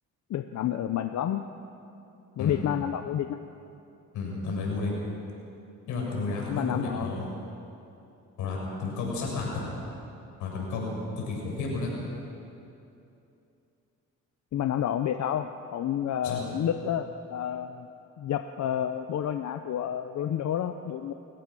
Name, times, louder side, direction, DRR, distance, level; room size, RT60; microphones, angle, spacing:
voice 1, 0.3-1.5 2.4-3.4 6.5-7.3 14.5-17.9 18.2-21.1, left 10 dB, 65° left, 8 dB, 0.8 m, -30 dB
voice 2, 4.1-4.9 5.9-7.3 8.4-9.6 10.4-11.9 16.2-16.4, left 3 dB, 90° left, -2 dB, 6.6 m, -32 dB
29.5 x 14.5 x 6.2 m, 2.8 s
cardioid pair, 90°, 30 cm